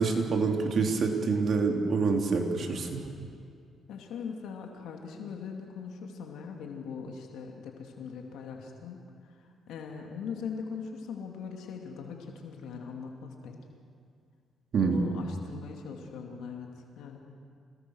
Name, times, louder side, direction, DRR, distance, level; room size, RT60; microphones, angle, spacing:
voice 1, 0.0-3.1 14.7-15.0, right 4 dB, 55° right, 2 dB, 3.3 m, -26 dB
voice 2, 3.9-9.4 9.7-13.6 14.8-16.7 17.0-17.2, left 6 dB, 85° left, 1 dB, 2.7 m, -40 dB
27.0 x 20.0 x 6.5 m, 2.3 s
cardioid pair, 90°, 0 cm